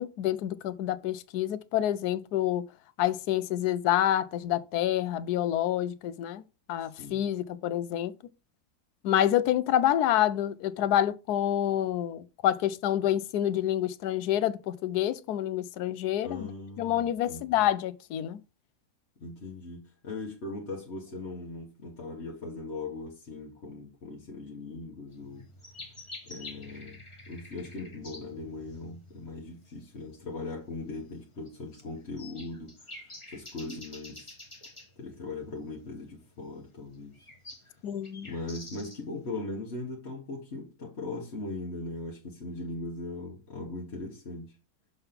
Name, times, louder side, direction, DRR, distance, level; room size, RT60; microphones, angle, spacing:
voice 1, 0.0-2.6 3.0-8.1 9.0-16.5 16.8-18.4 37.8-38.3, left 12 dB, 80° left, 1.1 m, -28 dB
voice 2, 6.8-7.2 16.2-17.6 19.2-25.5 26.2-34.3 35.0-37.2 38.2-44.5, left 3 dB, 45° left, 1.5 m, -39 dB
sound 1, 25.1-39.2, left 2 dB, 20° left, 1.4 m, -48 dB
6.8 x 3.5 x 5.8 m
omnidirectional pair, 1.7 m